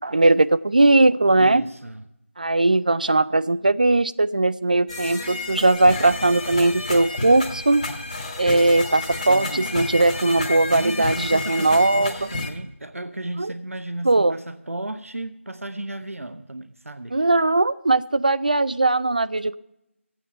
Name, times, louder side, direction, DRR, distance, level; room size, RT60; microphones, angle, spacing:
voice 1, 0.0-1.6 2.4-7.8 8.4-12.1 13.4-13.5 14.0-14.4 17.1-19.6, right 2 dB, 35° right, 17 dB, 0.3 m, -19 dB
voice 2, 1.4-2.1 9.3-9.9 10.7-17.3, right 1 dB, 85° right, 9 dB, 0.8 m, -34 dB
sound 1, 4.9-12.5, left 3 dB, 30° left, 1.5 m, -31 dB
13.0 x 9.0 x 5.4 m, 0.87 s
figure-of-eight pair, 170°, 7 cm